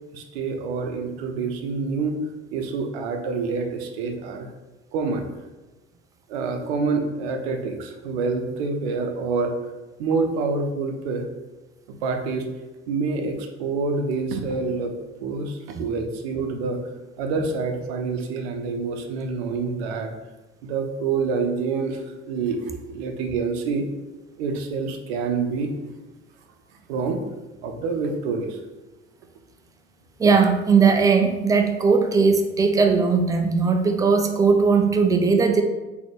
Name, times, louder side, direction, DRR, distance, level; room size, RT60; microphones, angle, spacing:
voice 1, 0.1-2.2 2.5-4.5 4.9-5.2 6.3-9.5 10.0-11.3 12.0-12.5 12.9-15.0 15.2-16.8 17.2-20.1 20.6-22.6 22.9-23.8 24.4-25.7 26.9-27.2 27.6-28.6, right 4 dB, 65° right, 5 dB, 0.6 m, -27 dB
voice 2, 30.2-35.6, right 5 dB, 10° right, 5 dB, 0.3 m, -18 dB
4.0 x 2.8 x 3.3 m, 1.1 s
figure-of-eight pair, 60°, 34 cm